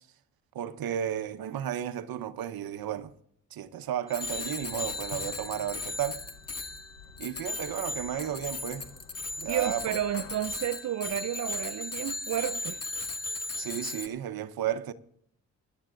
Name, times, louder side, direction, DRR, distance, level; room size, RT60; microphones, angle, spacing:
voice 1, 0.5-3.1 3.5-6.2 7.2-8.9 9.4-9.8 13.6-14.9, right 10 dB, 60° right, 1.1 m, -33 dB
Bicycle bell, 4.1-14.1, left 3 dB, 35° left, 2.1 m, -37 dB
blows on metal, 4.3-10.8, left 4 dB, 85° left, 3.6 m, -50 dB
voice 2, 9.5-12.8, right 11 dB, 45° right, 0.5 m, -31 dB
24.0 x 11.5 x 2.6 m
hypercardioid pair, 50°, 41 cm